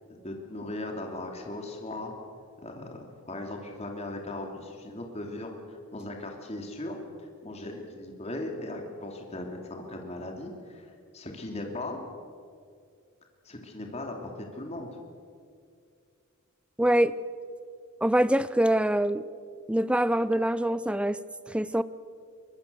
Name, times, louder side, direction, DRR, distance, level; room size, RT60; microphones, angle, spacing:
voice 1, 0.1-2.1 2.6-3.0 3.3-7.0 7.4-12.0 13.4-14.9, left 2 dB, 30° left, 2 dB, 2.7 m, -38 dB
voice 2, 16.8-17.1 18.0-19.2 19.7-21.2 21.5-21.8, right 1 dB, 5° right, 16 dB, 0.5 m, -24 dB
23.0 x 22.0 x 6.8 m, 2.3 s
head